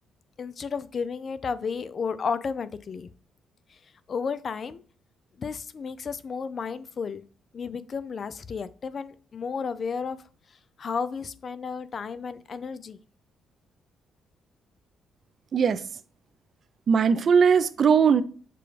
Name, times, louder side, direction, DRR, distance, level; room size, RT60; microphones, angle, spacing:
voice 1, 0.4-3.1 3.7-3.8 4.1-4.8 5.4-7.2 7.5-10.2 10.8-13.0, left 5 dB, 45° left, 0.4 m, -32 dB
voice 2, 16.9-18.2, right 6 dB, 55° right, 0.4 m, -19 dB
6.8 x 2.3 x 3.2 m
cardioid pair, 90°, 0 cm